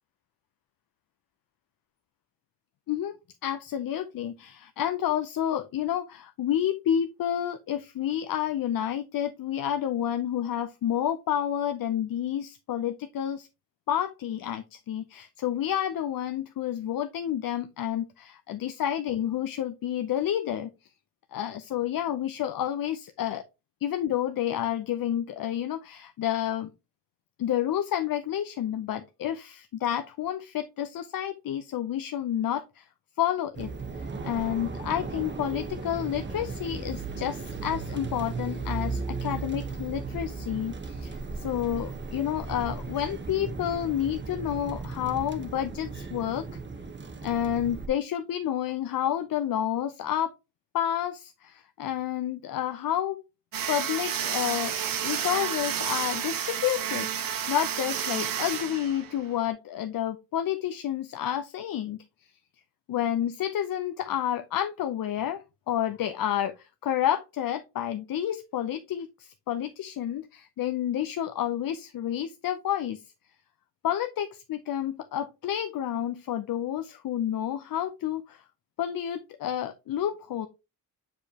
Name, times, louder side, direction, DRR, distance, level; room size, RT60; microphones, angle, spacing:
voice 1, 3.4-13.5 13.9-20.7 21.3-23.4 23.8-26.7 27.4-32.9 33.2-46.5 47.2-50.3 50.7-53.2 53.7-62.0 62.9-73.0 73.8-78.4 78.8-80.5, left 10 dB, 60° left, 0.6 m, -30 dB
sound 1, 33.5-47.9, right 4 dB, 30° right, 1.0 m, -36 dB
sound 2, 53.5-59.5, right 9 dB, 60° right, 1.0 m, -31 dB
6.4 x 5.1 x 2.8 m
cardioid pair, 75°, 38 cm